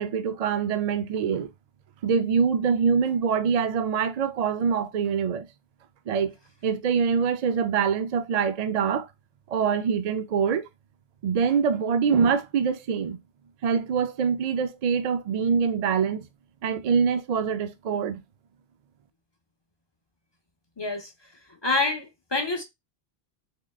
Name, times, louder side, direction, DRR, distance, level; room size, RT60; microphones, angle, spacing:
voice 1, 0.0-1.5 2.0-5.5 6.1-6.3 6.6-9.1 9.5-10.7 11.2-13.2 13.6-16.3 16.6-18.2, right 6 dB, 55° right, 0.5 m, -24 dB
voice 2, 20.8-21.1 21.6-22.6, left 2 dB, 30° left, 0.6 m, -27 dB
3.8 x 3.3 x 2.3 m
omnidirectional pair, 1.0 m